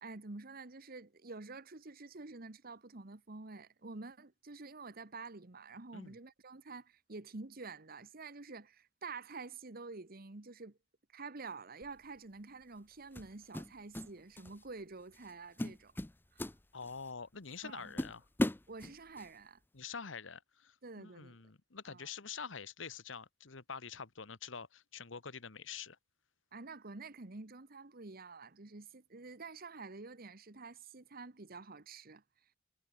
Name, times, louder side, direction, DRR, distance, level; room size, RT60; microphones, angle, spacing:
voice 1, 0.0-10.8 11.1-15.9 16.3-16.5 17.6-18.0 18.7-19.6 20.8-21.4 21.9-22.1 26.5-32.2, right 3 dB, 50° right, 1.4 m, -48 dB
sound 1, 11.8-12.1 13.2-14.1 14.4-14.7 15.1-15.3 15.6-17.1 17.5-17.6 18.0-19.3, left 1 dB, 10° left, 0.5 m, -37 dB
voice 2, 16.7-18.2 19.7-26.0, left 6 dB, 75° left, 1.3 m, -46 dB
head